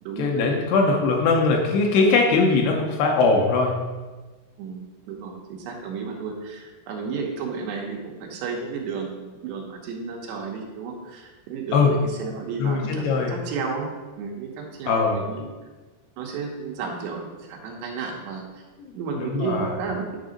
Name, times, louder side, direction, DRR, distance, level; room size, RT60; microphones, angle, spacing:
voice 1, 0.2-3.8 11.7-11.9 12.6-13.3 14.9-15.2 18.8-19.8, left 4 dB, 75° left, 1 dB, 2.7 m, -21 dB
voice 2, 5.1-13.9 14.2-15.5 16.2-18.4 18.9-20.2, right 5 dB, 80° right, 0 dB, 3.2 m, -32 dB
10.0 x 3.9 x 5.2 m, 1.3 s
omnidirectional pair, 4.8 m